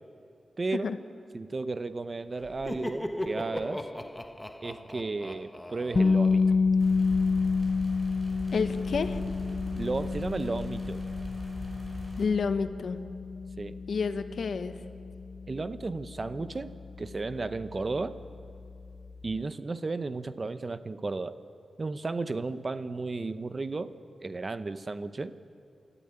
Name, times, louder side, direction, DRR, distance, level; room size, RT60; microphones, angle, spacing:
voice 1, 0.6-0.9 1.3-3.9 4.6-6.4 9.8-11.0 13.6-13.8 15.5-18.2 19.2-21.4 21.8-23.9 24.2-25.3, right 3 dB, 35° right, 12 dB, 0.8 m, -34 dB
Laughter, 2.4-7.1, left 1 dB, 10° left, 1.1 m, -38 dB
sound 1, 5.9-17.8, left 4 dB, 35° left, 0.6 m, -29 dB
sound 2, 6.8-12.3, equal, 15° right, 5.3 m, -41 dB
voice 2, 8.5-9.2 12.2-13.0 13.9-14.7, left 5 dB, 65° left, 10 dB, 1.2 m, -29 dB
29.0 x 14.0 x 9.9 m, 2.6 s
wide cardioid pair, 135°, 0 cm